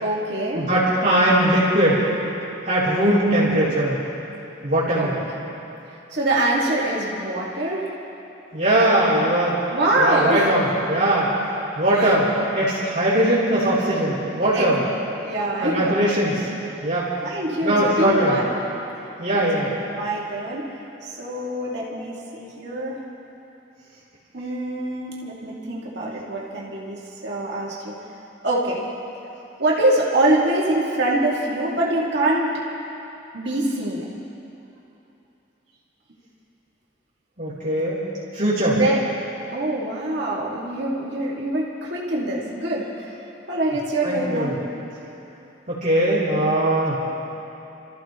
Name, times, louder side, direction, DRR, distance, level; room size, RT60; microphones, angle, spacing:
voice 1, 0.0-0.7 3.7-3.8 5.0-5.1 5.4-5.5 6.1-7.9 9.7-10.5 11.9-12.2 14.5-14.8 15.2-16.0 17.2-18.5 19.3-20.7 21.2-23.0 24.3-27.9 28.4-28.8 29.6-32.6 33.3-34.1 38.7-39.0 39.5-43.2 43.5-44.6, right 1 dB, 60° right, -5 dB, 2.3 m, -24 dB
voice 2, 0.5-2.0 2.7-4.0 4.6-5.2 8.5-9.6 10.0-11.3 11.8-12.3 12.5-14.8 15.6-16.5 16.8-17.1 17.6-18.4 19.2-19.7 37.4-38.0 38.3-38.8 44.0-44.5 45.7-47.0, right 1 dB, 40° right, -11 dB, 3.5 m, -20 dB
29.5 x 14.0 x 3.1 m, 2.9 s
head